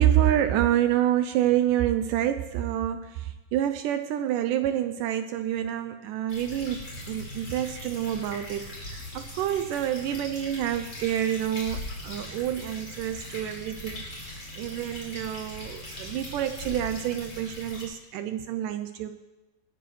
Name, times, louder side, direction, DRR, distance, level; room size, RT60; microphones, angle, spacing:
voice 1, 0.0-6.8 7.1-19.2, right 11 dB, 80° right, 9 dB, 2.0 m, -27 dB
sound 1, 6.3-17.8, left 1 dB, 35° left, 5.0 m, -40 dB
20.0 x 14.0 x 3.2 m, 1.1 s
omnidirectional pair, 4.1 m